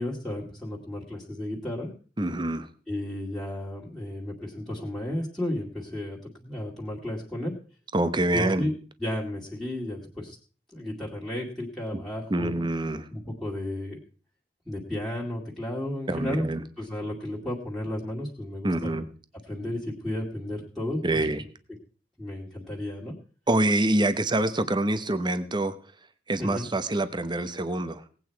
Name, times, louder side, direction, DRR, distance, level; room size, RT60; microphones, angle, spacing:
voice 1, 0.0-1.9 2.9-7.5 8.3-10.4 10.7-12.5 13.1-14.0 14.7-16.5 16.8-19.0 19.5-21.2 22.2-23.1 26.4-26.7, left 1 dB, ahead, -6 dB, 2.3 m, -33 dB
voice 2, 2.2-2.7 7.9-8.7 12.3-13.1 16.1-16.6 18.6-19.1 21.0-21.4 23.5-25.7 26.3-28.0, right 1 dB, 25° right, 11 dB, 0.9 m, -26 dB
18.0 x 8.7 x 4.6 m, 0.40 s
head